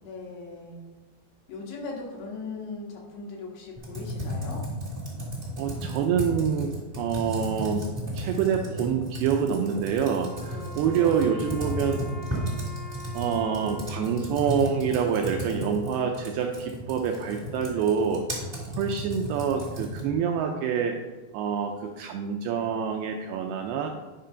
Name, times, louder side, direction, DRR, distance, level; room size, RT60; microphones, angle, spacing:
voice 1, 0.0-0.8 1.5-4.6 10.5-11.0, left 3 dB, 75° left, -2 dB, 3.6 m, -39 dB
Computer keyboard, 3.8-20.2, equal, 35° right, 0.8 m, -34 dB
voice 2, 5.6-7.8 8.1-12.0 13.1-18.5 18.8-21.0 21.3-23.9, right 7 dB, 85° right, 3 dB, 2.3 m, -26 dB
Wind instrument woodwind instrument, 10.2-15.3, equal, 45° left, 2.9 m, -45 dB
9.9 x 3.8 x 5.6 m, 1.2 s
omnidirectional pair, 5.0 m